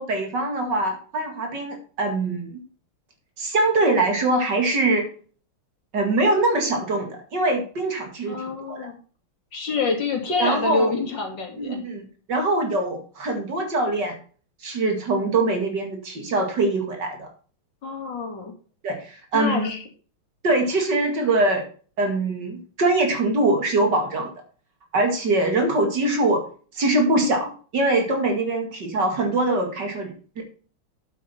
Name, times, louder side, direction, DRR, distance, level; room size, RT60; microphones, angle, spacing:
voice 1, 0.0-2.6 3.4-5.1 5.9-8.4 8.7-8.9 10.4-10.9 11.6-14.2 14.6-17.3 18.8-19.7 20.4-21.7 22.0-24.3 24.9-26.4 26.7-30.4, right 2 dB, 55° right, 4 dB, 2.6 m, -23 dB
voice 2, 8.3-9.0 9.5-11.8 17.8-18.5 19.3-19.8, left 4 dB, 55° left, 2 dB, 3.1 m, -26 dB
8.6 x 8.3 x 4.3 m, 0.40 s
omnidirectional pair, 2.3 m